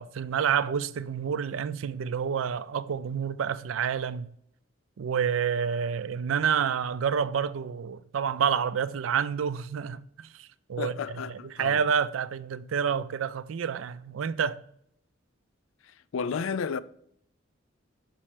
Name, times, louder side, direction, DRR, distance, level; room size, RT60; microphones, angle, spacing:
voice 1, 0.0-4.3 5.0-11.0 11.3-14.6, right 7 dB, 85° right, 0.4 m, -29 dB
voice 2, 10.8-11.8 15.8-16.8, left 6 dB, 85° left, 0.4 m, -32 dB
6.2 x 4.3 x 4.8 m
head